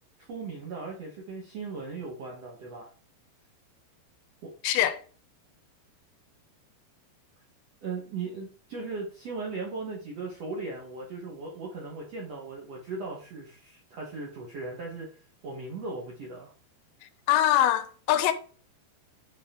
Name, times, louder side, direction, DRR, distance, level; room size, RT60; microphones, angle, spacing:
voice 1, 0.2-2.9 4.4-4.5 7.8-15.2 15.4-16.5, right 3 dB, 65° right, 1.6 m, -38 dB
voice 2, 4.6-5.0 17.3-18.3, left 12 dB, 85° left, 2.9 m, -23 dB
9.3 x 4.2 x 3.7 m
omnidirectional pair, 5.0 m